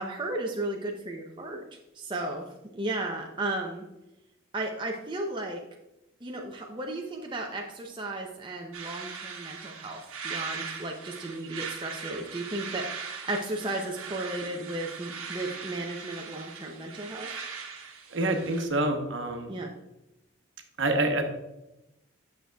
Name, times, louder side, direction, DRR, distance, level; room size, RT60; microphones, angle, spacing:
voice 1, 0.0-3.8 4.5-5.6 6.2-17.3 19.5-19.7, right 2 dB, 20° right, 0 dB, 0.5 m, -34 dB
sound 1, 8.7-18.7, right 6 dB, 90° right, 1.1 m, -40 dB
voice 2, 18.1-19.5 20.8-21.2, right 2 dB, 60° right, 4 dB, 0.9 m, -27 dB
8.8 x 6.5 x 2.3 m, 0.93 s
head